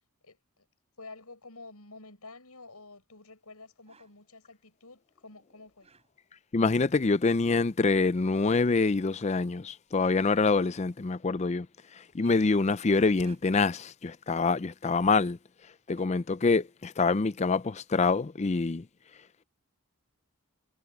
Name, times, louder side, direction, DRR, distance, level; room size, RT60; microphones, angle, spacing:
voice 1, 0.2-0.7 1.0-5.9, left 3 dB, 85° left, 6.6 m, -50 dB
sound 1, 3.9-4.2 5.7-6.4 7.1-7.7 8.4-8.8 9.7-11.0 12.0-12.6 13.1-13.7 15.3-15.4 15.6-17.3, right 4 dB, 30° right, 6.6 m, -62 dB
voice 2, 6.5-11.7 12.1-15.4 15.9-18.8, left 4 dB, 30° left, 0.4 m, -25 dB
head